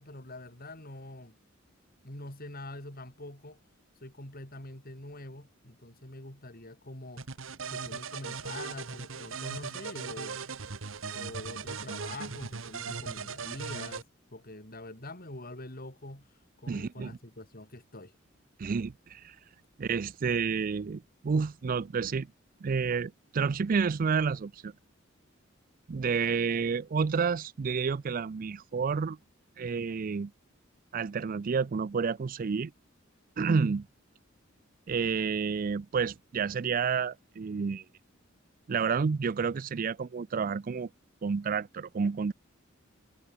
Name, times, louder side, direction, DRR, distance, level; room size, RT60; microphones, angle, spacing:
voice 1, 0.0-1.4 2.0-3.6 4.0-7.3 7.7-10.5 11.1-14.0 14.3-16.3 16.6-18.1, left 1 dB, 50° left, 6.8 m, -45 dB
sound 1, 7.2-14.0, right 5 dB, 75° right, 1.3 m, -38 dB
voice 2, 16.7-17.2 18.6-19.4 19.8-22.3 22.6-24.7 25.9-29.2 29.6-30.3 30.9-32.7 33.4-33.9 34.9-37.8 38.7-40.9 41.2-42.3, right 5 dB, 45° right, 0.4 m, -30 dB
head